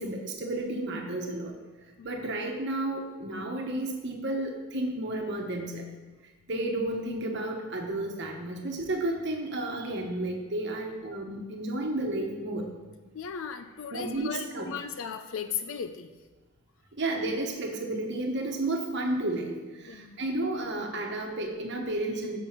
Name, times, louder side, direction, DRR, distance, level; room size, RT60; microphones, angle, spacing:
voice 1, 0.0-1.5 2.0-5.8 6.5-12.6 13.9-14.7 17.0-19.6 19.8-22.4, right 2 dB, 55° right, 1 dB, 1.2 m, -32 dB
voice 2, 13.1-16.1 19.9-20.2, left 7 dB, 70° left, 10 dB, 0.4 m, -37 dB
6.9 x 6.3 x 5.7 m, 1.3 s
head